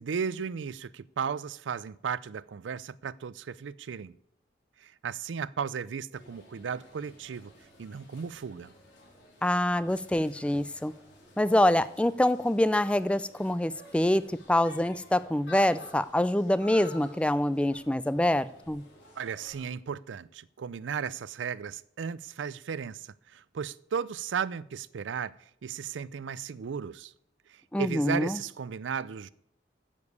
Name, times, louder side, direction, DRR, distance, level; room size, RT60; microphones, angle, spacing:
voice 1, 0.0-4.1 4.8-7.5 7.8-8.7 19.2-25.3 25.6-27.1 27.5-29.3, right 6 dB, 90° right, 0.4 m, -35 dB
sound 1, 6.1-19.6, left 2 dB, 90° left, 3.9 m, -52 dB
voice 2, 9.4-10.9 11.4-18.8 27.7-28.4, left 1 dB, 5° left, 0.3 m, -25 dB
9.8 x 7.2 x 8.1 m
head